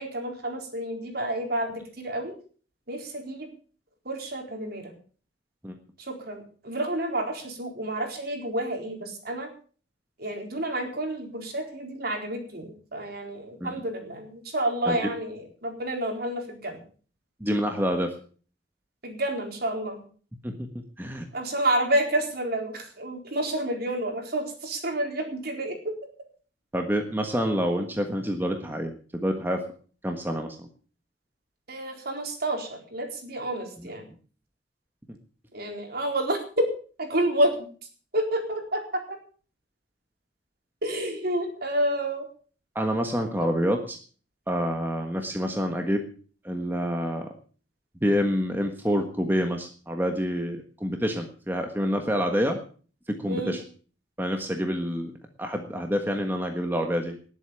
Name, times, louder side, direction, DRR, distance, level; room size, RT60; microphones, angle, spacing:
voice 1, 0.0-2.3 2.9-3.5 4.0-4.9 6.0-9.5 10.2-16.8 19.0-20.0 21.3-25.9 31.7-34.1 35.5-36.7 37.0-37.7 38.1-38.8 39.1-39.2 40.8-42.3 53.3-53.5, right 1 dB, 55° right, 3 dB, 4.2 m, -29 dB
voice 2, 17.4-18.2 20.4-21.3 26.7-29.6 30.0-30.7 35.1-35.2 42.7-44.0 44.5-46.0 46.4-47.3 48.0-52.6 53.1-53.6 54.2-55.1 55.4-57.2, equal, 10° right, 4 dB, 1.4 m, -27 dB
19.5 x 8.3 x 7.0 m, 0.43 s
head